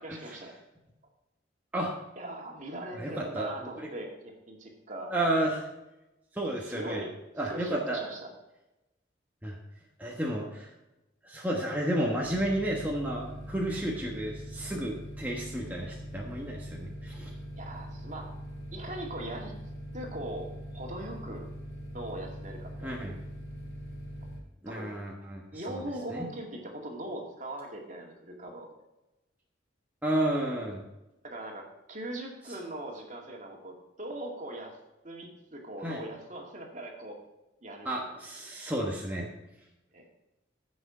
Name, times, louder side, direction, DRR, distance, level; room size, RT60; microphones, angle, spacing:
voice 1, 0.0-0.5 2.2-5.1 6.6-7.1 7.4-8.3 17.6-18.3 18.7-19.6 19.9-21.5 21.9-22.9 24.7-24.9 25.5-28.8 31.2-34.8 35.0-37.2 37.6-38.0 39.9-40.1, right 1 dB, 40° right, 1 dB, 2.2 m, -40 dB
voice 2, 2.9-3.9 5.1-5.6 6.3-7.0 7.4-8.0 9.4-9.6 10.0-10.7 11.2-17.3 22.8-23.2 24.6-25.8 26.1-26.3 30.0-30.8 35.8-36.0 37.8-39.3, right 1 dB, 10° right, -3 dB, 1.3 m, -32 dB
sound 1, 12.2-24.4, equal, 75° left, 3.0 m, -42 dB
15.0 x 6.3 x 5.0 m, 0.98 s
head